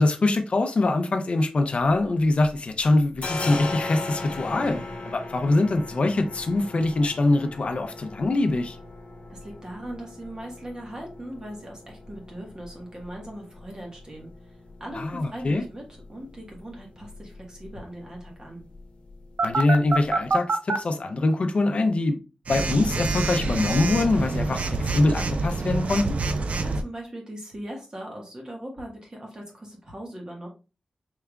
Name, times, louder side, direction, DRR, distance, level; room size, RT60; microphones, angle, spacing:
voice 1, 0.0-8.8 14.9-15.6 19.4-22.2 22.5-26.2, left 2 dB, 55° left, 0.5 m, -23 dB
sound 1, 1.6-2.6 2.8-20.3, left 2 dB, 70° left, 0.9 m, -39 dB
voice 2, 9.3-14.5 14.8-15.8 16.1-18.6 26.5-30.5, right 1 dB, 30° right, 1.4 m, -39 dB
Telephone, 19.4-20.8 22.5-26.8, right 3 dB, 65° right, 0.4 m, -26 dB
4.7 x 3.4 x 2.3 m
wide cardioid pair, 125°, 2 cm